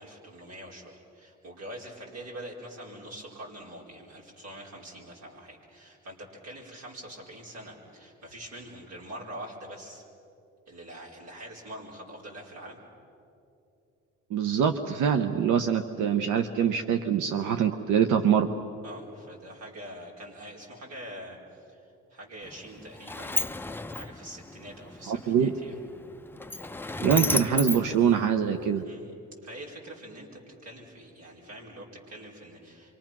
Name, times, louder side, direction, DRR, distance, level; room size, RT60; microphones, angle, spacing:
voice 1, 0.0-10.0 10.7-12.8 17.5-17.7 18.8-23.3 23.9-25.8 28.8-29.1 29.4-32.9, right 1 dB, 65° right, -3 dB, 4.8 m, -44 dB
voice 2, 14.3-18.5 25.1-25.5 27.0-28.8, right 8 dB, 80° right, 7 dB, 0.9 m, -24 dB
Sliding door, 22.4-28.8, left 2 dB, 5° left, 0.5 m, -34 dB
26.5 x 24.5 x 6.1 m, 2.7 s
cardioid pair, 90°, 30 cm